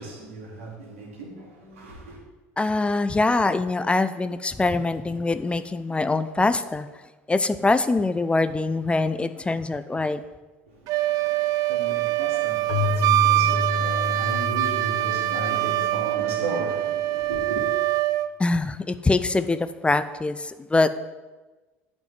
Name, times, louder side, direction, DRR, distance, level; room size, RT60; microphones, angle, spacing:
voice 1, 0.0-2.2 10.7-17.7, right 3 dB, 85° right, 2.7 m, -35 dB
voice 2, 2.6-6.9 7.3-10.2 18.4-20.9, left 3 dB, 15° left, 0.6 m, -23 dB
Wind instrument woodwind instrument, 10.9-18.3, right 15 dB, 60° right, 0.5 m, -24 dB
Keyboard (musical), 12.7-16.2, left 4 dB, 75° left, 0.9 m, -29 dB
9.0 x 5.4 x 7.5 m
hypercardioid pair, 70°, 7 cm